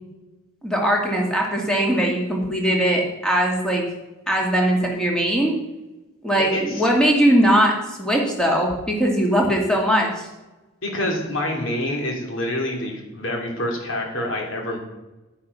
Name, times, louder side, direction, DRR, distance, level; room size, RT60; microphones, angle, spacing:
voice 1, 0.6-3.8 4.3-5.5 6.2-10.3, equal, 5° left, -1 dB, 2.4 m, -20 dB
voice 2, 6.4-6.9 10.8-14.8, left 1 dB, 55° left, 0 dB, 3.1 m, -27 dB
10.0 x 9.9 x 5.7 m, 1.1 s
head